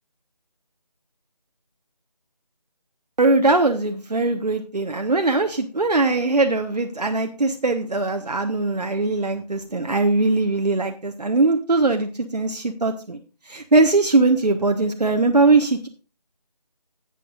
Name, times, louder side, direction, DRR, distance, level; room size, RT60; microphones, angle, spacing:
voice 1, 3.2-13.2 13.5-15.9, right 3 dB, 75° right, 4 dB, 1.2 m, -20 dB
16.0 x 7.0 x 2.5 m, 0.32 s
figure-of-eight pair, 170°, 21 cm